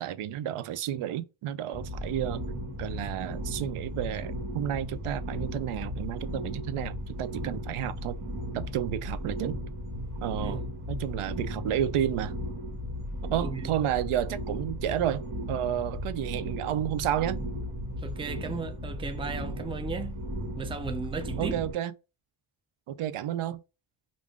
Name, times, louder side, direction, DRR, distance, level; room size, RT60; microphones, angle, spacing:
voice 1, 0.0-2.4 2.8-8.2 8.5-9.6 10.2-10.6 10.9-12.3 13.3-17.4 21.4-21.9 22.9-23.6, right 11 dB, 85° right, 0.5 m, -31 dB
sound 1, 1.7-21.7, equal, 55° right, 1.6 m, -36 dB
voice 2, 13.4-13.8 18.0-20.2 20.6-21.6, right 5 dB, 10° right, 0.4 m, -35 dB
3.5 x 2.5 x 3.5 m
wide cardioid pair, 115°, 49 cm